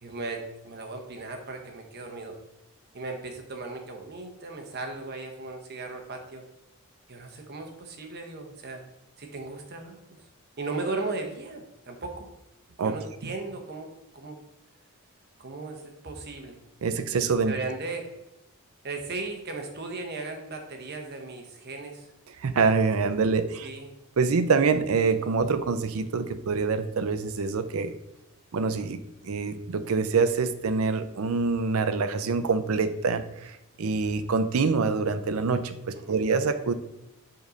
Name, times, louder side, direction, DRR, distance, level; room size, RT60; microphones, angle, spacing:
voice 1, 0.0-2.4 2.9-6.4 7.1-8.9 9.2-10.0 10.6-12.3 12.8-13.9 14.1-14.4 15.4-16.6 17.4-18.1 18.8-22.1 23.6-24.0 36.0-36.2, right 3 dB, 50° right, 4 dB, 0.9 m, -36 dB
voice 2, 16.8-17.5 22.4-23.7 24.2-28.0 28.5-36.7, right 4 dB, 75° right, 11 dB, 0.5 m, -25 dB
5.2 x 3.9 x 5.0 m, 0.91 s
head